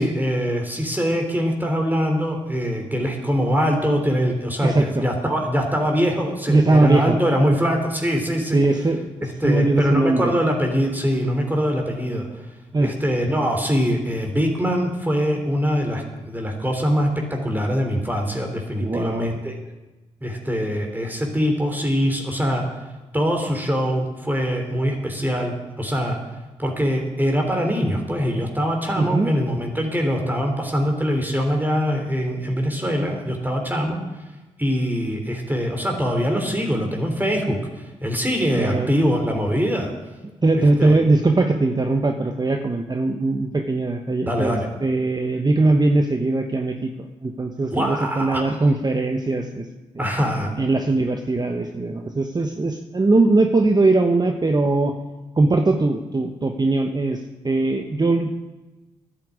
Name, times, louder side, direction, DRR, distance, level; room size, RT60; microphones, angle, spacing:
voice 1, 0.0-8.6 9.4-12.3 12.8-19.6 20.2-22.6 23.1-26.2 26.6-34.0 34.6-39.9 40.5-41.0 44.2-44.7 47.7-48.5 50.0-50.5, equal, 15° right, 1 dB, 3.3 m, -23 dB
voice 2, 4.6-5.0 6.5-7.2 8.5-9.2 9.4-10.3 12.7-12.9 18.8-19.4 29.0-29.3 38.6-38.9 40.4-49.7 49.9-50.0 50.6-54.9 55.3-58.3, right 2 dB, 30° right, 5 dB, 1.1 m, -20 dB
10.5 x 10.0 x 8.5 m, 1.1 s
supercardioid pair, 45°, 13 cm